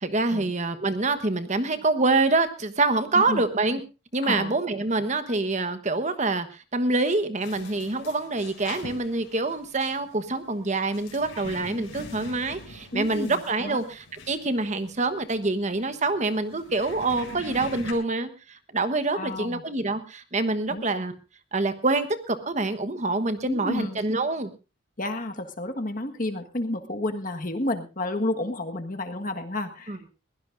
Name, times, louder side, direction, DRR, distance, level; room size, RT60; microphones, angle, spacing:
voice 1, 0.0-3.8 4.1-21.1 21.5-24.5 29.9-30.0, right 3 dB, 35° right, 10 dB, 1.2 m, -26 dB
voice 2, 4.2-4.5 12.9-13.8 19.1-19.6 20.7-20.8 23.4-24.0 25.0-30.1, left 1 dB, 45° left, 5 dB, 1.6 m, -31 dB
sound 1, 7.4-17.9, left 2 dB, 85° left, 4.3 m, -43 dB
21.5 x 16.5 x 2.6 m, 0.31 s
head